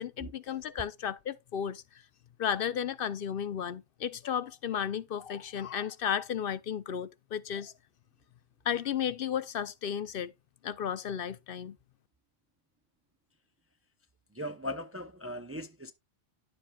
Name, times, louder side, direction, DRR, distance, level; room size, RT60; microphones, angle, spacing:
voice 1, 0.0-1.8 2.4-7.7 8.6-10.3 10.6-11.8, left 8 dB, 65° left, 0.7 m, -34 dB
voice 2, 14.3-15.9, left 1 dB, 20° right, 0.4 m, -39 dB
10.5 x 7.4 x 2.3 m
omnidirectional pair, 1.1 m